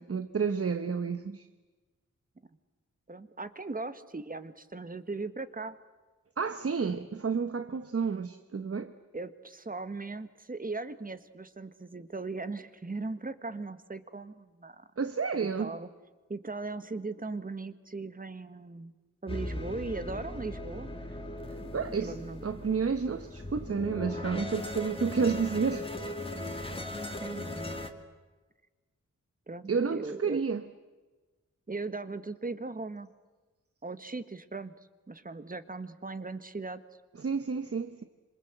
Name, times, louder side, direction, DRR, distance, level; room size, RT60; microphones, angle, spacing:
voice 1, 0.0-1.5 6.4-8.9 15.0-15.7 21.7-25.9 29.7-30.6 37.2-38.0, right 5 dB, 50° right, 1.1 m, -30 dB
voice 2, 3.1-5.8 9.1-14.9 15.6-15.9 16.3-18.9 19.2-21.2 21.6-22.4 26.5-26.7 27.2-27.8 29.5-30.5 31.7-33.1 33.8-34.8 35.1-36.8, right 3 dB, 30° right, 1.6 m, -39 dB
sound 1, 19.3-27.9, left 1 dB, 20° left, 2.6 m, -38 dB
27.0 x 27.0 x 8.1 m
wide cardioid pair, 130°, 30 cm